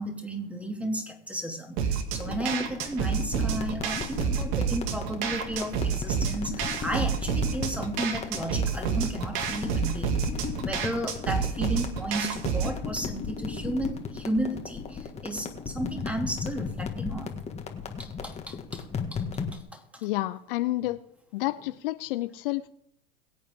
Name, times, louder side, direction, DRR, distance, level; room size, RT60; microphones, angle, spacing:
voice 1, 0.0-10.2 10.6-17.4 18.0-18.8 19.1-19.2 19.5-20.1, right 1 dB, 5° right, 3 dB, 2.7 m, -33 dB
sound 1, 1.8-12.8, right 7 dB, 55° right, 2.1 m, -29 dB
sound 2, 2.1-19.6, left 5 dB, 20° left, 1.9 m, -36 dB
voice 2, 20.0-21.0 21.3-22.7, left 17 dB, 60° left, 12 dB, 0.7 m, -29 dB
22.0 x 8.5 x 3.8 m, 0.74 s
hypercardioid pair, 105°, 31 cm